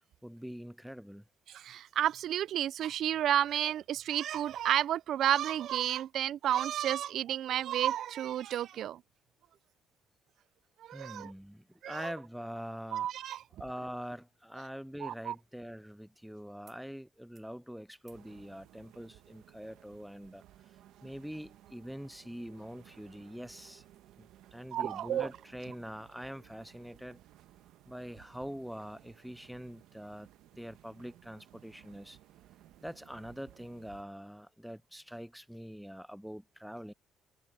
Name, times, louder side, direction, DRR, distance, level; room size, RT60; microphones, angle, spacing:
voice 1, 0.2-1.2 10.9-13.1 13.6-20.4 21.0-23.8 24.2-27.2 27.9-30.3 30.5-32.2 32.8-36.9, equal, ahead, 0.4 m, -44 dB
voice 2, 1.5-9.0 10.8-11.3 11.8-12.1 12.9-13.4 15.0-15.4 24.7-25.3, right 11 dB, 65° right, 0.4 m, -31 dB
sound 1, 16.6-16.8 17.1-17.6 18.0-18.3 19.6-19.7, right 6 dB, 40° right, 5.4 m, -68 dB
sound 2, 18.1-34.0, right 13 dB, 80° right, 1.4 m, -59 dB
cardioid pair, 105°, 0 cm